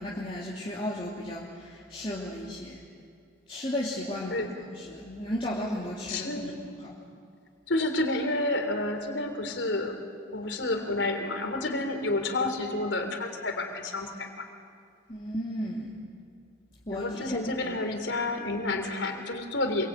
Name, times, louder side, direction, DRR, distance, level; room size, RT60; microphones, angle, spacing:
voice 1, 0.0-2.8 3.5-7.0 15.1-16.0 16.9-17.8, left 1 dB, 30° left, -5 dB, 2.8 m, -34 dB
voice 2, 6.1-6.6 7.7-10.0 10.3-14.4 16.9-19.9, left 2 dB, 75° left, 6 dB, 3.5 m, -30 dB
27.5 x 23.5 x 9.0 m, 2.2 s
head